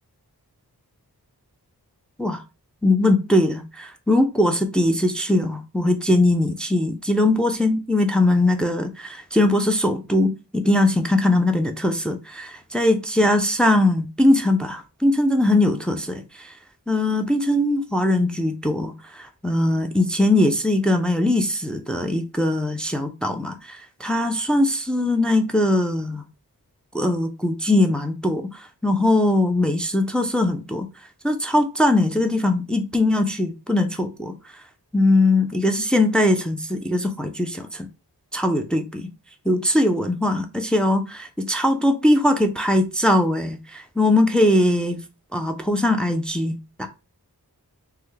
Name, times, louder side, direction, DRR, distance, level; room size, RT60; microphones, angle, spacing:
voice 1, 2.8-16.5 16.9-26.2 26.9-30.9 31.2-34.3 34.9-37.9 38.3-39.1 39.5-45.0 45.3-46.9, left 1 dB, ahead, 0.4 m, -21 dB
3.3 x 2.2 x 3.3 m
wide cardioid pair, 45°, 40 cm